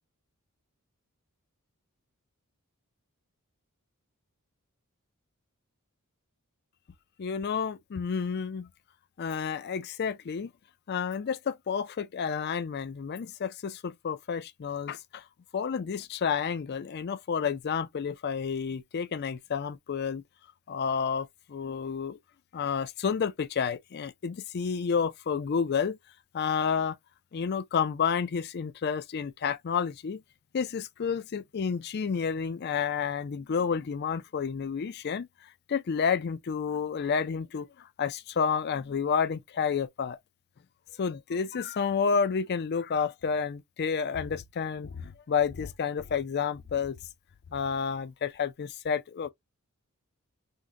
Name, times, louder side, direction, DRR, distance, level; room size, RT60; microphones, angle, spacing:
voice 1, 7.2-8.7 9.2-10.5 10.9-15.2 15.5-20.2 20.7-22.2 22.5-26.0 26.3-27.0 27.3-30.2 30.5-35.3 35.7-40.2 41.0-47.0 47.5-49.3, left 6 dB, 45° left, 0.4 m, -30 dB
3.7 x 2.1 x 2.8 m
head